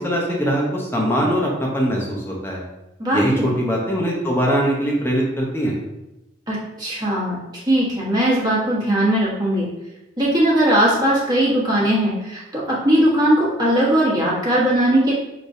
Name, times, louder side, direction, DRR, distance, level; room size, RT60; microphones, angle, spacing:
voice 1, 0.0-2.6 3.1-5.7, equal, 10° left, -2 dB, 0.8 m, -21 dB
voice 2, 3.0-3.5 6.5-7.4 7.7-9.7 10.2-15.1, right 1 dB, 20° right, -6 dB, 1.3 m, -19 dB
6.5 x 3.0 x 2.7 m, 0.97 s
head